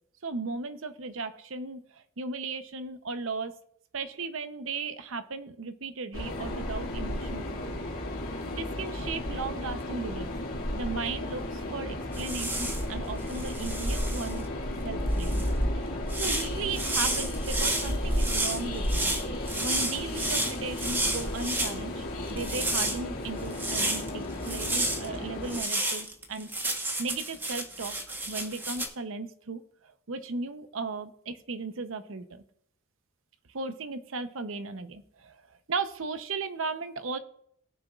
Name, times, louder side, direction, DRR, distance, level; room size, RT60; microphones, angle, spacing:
voice 1, 0.2-3.5 3.9-7.8 8.5-10.3 10.7-14.5 14.8-15.4 15.7-19.1 19.6-28.0 28.3-32.4 33.5-37.2, right 4 dB, 65° right, 10 dB, 0.7 m, -36 dB
Train, 6.1-25.6, left 1 dB, 75° left, 2.5 m, -33 dB
sound 1, 12.1-12.8 13.3-14.4 15.2-15.5 16.1-21.7 22.3-24.1 24.4-25.1 25.5-28.9, right 2 dB, 10° right, 1.1 m, -31 dB
20.5 x 6.9 x 2.4 m, 0.68 s
head